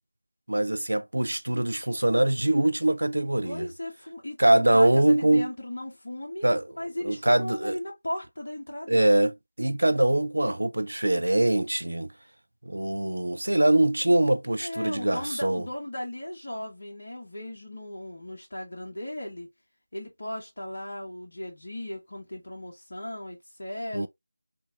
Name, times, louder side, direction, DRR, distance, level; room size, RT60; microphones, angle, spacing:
voice 1, 0.5-3.7 4.4-5.5 6.4-6.6 7.0-7.8 8.9-12.1 12.6-15.6 23.9-24.1, right 1 dB, 65° right, 0.4 m, -23 dB
voice 2, 3.4-6.5 6.8-9.0 14.6-19.5 19.9-24.1, left 1 dB, 50° left, 1.1 m, -36 dB
3.5 x 3.0 x 2.5 m
figure-of-eight pair, 165°, 0 cm